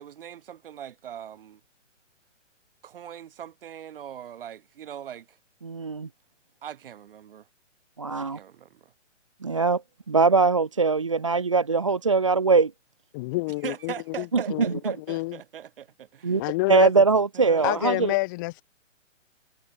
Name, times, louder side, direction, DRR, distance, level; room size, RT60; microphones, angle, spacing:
voice 1, 0.0-1.6 2.8-5.4 6.6-7.5 8.2-8.9 13.6-16.4 17.3-18.0, right 9 dB, 45° right, 6.7 m, -40 dB
voice 2, 5.6-6.1 8.0-8.4 9.4-9.8 10.1-12.7 14.3-15.0 16.2-16.4 16.7-18.1, right 4 dB, 25° right, 0.4 m, -22 dB
voice 3, 13.1-15.4 16.3-16.9 17.6-18.6, left 24 dB, 15° left, 1.1 m, -28 dB
hypercardioid pair, 165°, 38 cm